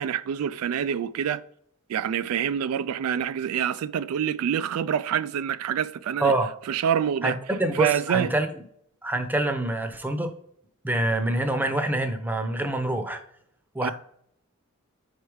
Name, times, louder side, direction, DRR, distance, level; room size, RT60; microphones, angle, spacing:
voice 1, 0.0-1.4 1.9-6.3 6.7-7.4 7.7-8.3 13.8-13.9, right 8 dB, 80° right, 0.3 m, -26 dB
voice 2, 7.2-8.5 9.0-10.3 10.8-13.2 13.7-13.9, right 1 dB, 10° right, 0.7 m, -26 dB
5.5 x 4.8 x 4.7 m
head